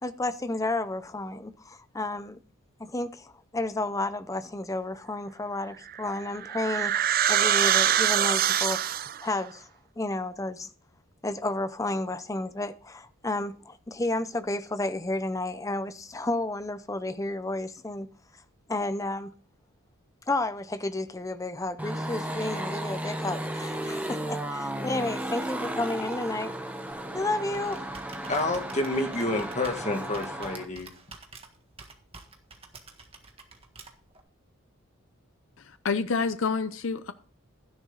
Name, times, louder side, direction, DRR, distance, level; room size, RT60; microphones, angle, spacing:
voice 1, 0.0-2.4 2.8-8.9 9.2-9.7 10.0-10.7 11.2-18.1 18.7-19.3 20.3-26.5 27.1-27.9, left 2 dB, 15° left, 0.6 m, -31 dB
sound 1, 5.9-9.3, right 10 dB, 40° right, 0.4 m, -24 dB
sound 2, 21.8-30.6, right 1 dB, 5° right, 1.1 m, -34 dB
Computer keyboard, 26.9-34.2, right 4 dB, 25° right, 1.5 m, -49 dB
voice 2, 28.3-30.9, left 2 dB, 30° left, 1.9 m, -29 dB
voice 3, 35.6-37.1, left 4 dB, 65° left, 0.6 m, -28 dB
12.5 x 10.5 x 3.9 m
head